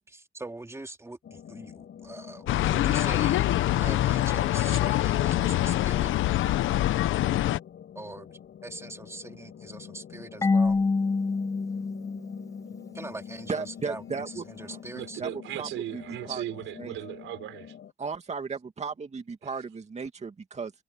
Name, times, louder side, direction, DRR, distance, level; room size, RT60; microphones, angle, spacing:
voice 1, 0.1-6.1 7.9-10.8 12.9-15.2, right 2 dB, 15° right, 2.6 m, -42 dB
sound 1, 1.2-17.9, left 8 dB, 60° left, 7.3 m, -46 dB
sound 2, 2.5-7.6, left 14 dB, 80° left, 0.9 m, -24 dB
Marimba xylophone / Wood, 10.4-13.1, left 4 dB, 15° left, 0.6 m, -27 dB
voice 2, 13.5-14.8 15.2-15.3 15.6-16.4 16.8-16.9 18.0-20.7, right 5 dB, 35° right, 2.3 m, -35 dB
voice 3, 14.9-17.8, right 14 dB, 85° right, 5.0 m, -37 dB
cardioid pair, 90°, 20 cm